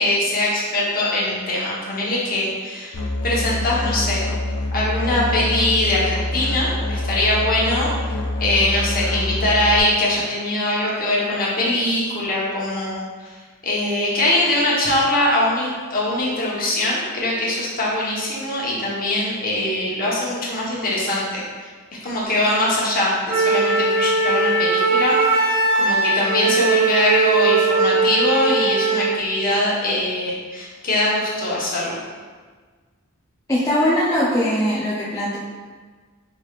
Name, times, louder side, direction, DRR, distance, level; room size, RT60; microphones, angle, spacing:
voice 1, 0.0-4.3 4.7-7.9 8.4-13.4 13.6-21.7 22.0-32.0, left 1 dB, 40° left, -6 dB, 1.0 m, -22 dB
Musical instrument, 2.9-9.8, left 1 dB, 75° left, 0.5 m, -25 dB
Wind instrument woodwind instrument, 23.3-29.1, right 3 dB, 55° right, 1.5 m, -19 dB
voice 2, 33.5-35.4, equal, 15° left, -8 dB, 0.5 m, -20 dB
4.8 x 3.4 x 2.4 m, 1.5 s
head